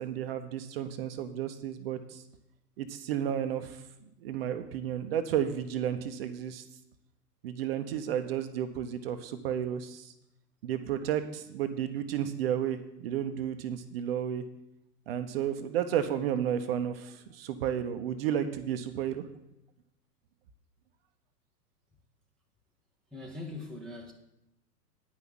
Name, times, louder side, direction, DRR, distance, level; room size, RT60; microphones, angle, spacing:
voice 1, 0.0-2.2 2.8-3.8 4.2-6.6 7.4-10.1 10.6-14.4 15.1-19.2, right 9 dB, 35° right, 0.7 m, -32 dB
voice 2, 23.1-24.1, left 2 dB, ahead, 0.6 m, -41 dB
9.7 x 5.6 x 7.6 m
figure-of-eight pair, 105°, 49 cm